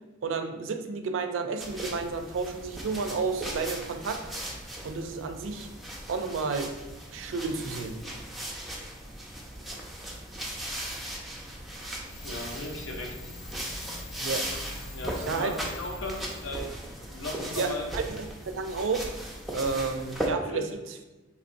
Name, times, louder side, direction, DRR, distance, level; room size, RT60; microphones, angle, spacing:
voice 1, 0.2-4.2 4.8-5.7 6.1-6.7 7.1-8.0 14.2-14.4 15.2-15.5 17.5-19.1 19.5-21.0, right 4 dB, 70° right, 7 dB, 0.4 m, -31 dB
sound 1, 1.6-20.3, right 1 dB, ahead, 0.5 m, -38 dB
sound 2, 12.0-17.5, left 1 dB, 45° left, 0.6 m, -44 dB
voice 2, 12.2-13.1 14.9-16.7 17.1-17.9 20.5-20.6, left 1 dB, 90° left, 0 dB, 0.7 m, -36 dB
3.9 x 2.9 x 2.6 m, 1.1 s
head